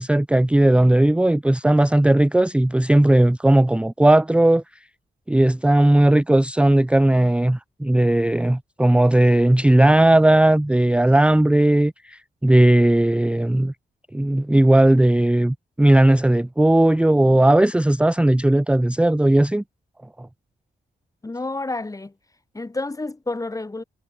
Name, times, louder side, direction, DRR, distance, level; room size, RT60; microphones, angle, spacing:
voice 1, 0.0-4.6 5.3-13.7 14.1-19.6 20.2-20.3, right 1 dB, 5° right, 0.6 m, -17 dB
voice 2, 21.2-22.1 22.5-23.8, left 2 dB, 15° left, 1.4 m, -29 dB
wide cardioid pair, 145°, 19 cm